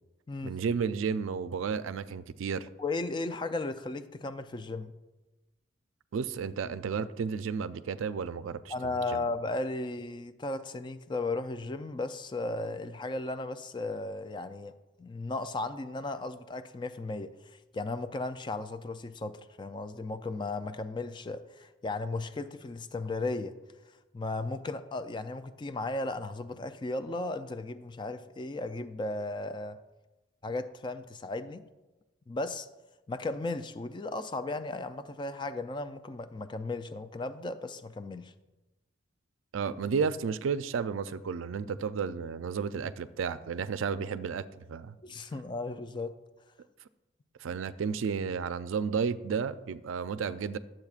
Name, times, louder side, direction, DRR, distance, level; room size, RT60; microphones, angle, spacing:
voice 1, 0.4-2.7 6.1-9.3 39.5-44.9 47.4-50.6, right 6 dB, 85° right, 13 dB, 0.4 m, -32 dB
voice 2, 2.8-4.9 8.7-14.7 15.0-23.5 24.1-29.8 30.4-31.6 32.3-32.7 33.1-38.3 45.0-46.1, left 2 dB, 25° left, 10 dB, 0.3 m, -35 dB
12.0 x 7.5 x 2.4 m, 1.1 s
head